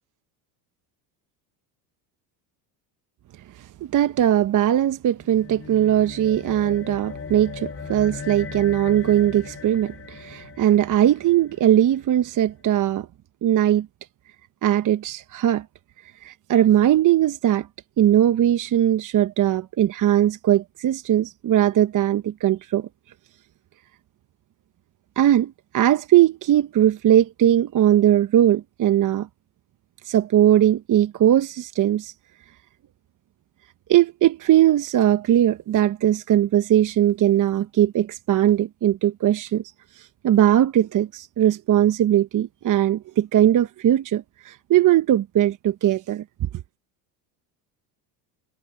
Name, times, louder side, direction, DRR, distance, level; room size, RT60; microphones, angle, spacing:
voice 1, 3.5-13.1 13.4-13.9 14.6-15.6 16.2-17.7 18.0-22.9 25.2-29.3 30.0-32.1 33.9-39.6 39.9-46.2, right 11 dB, 40° right, 1.0 m, -20 dB
sound 1, 5.2-11.8, left 6 dB, 25° left, 4.1 m, -38 dB
supercardioid pair, 100°, 49 cm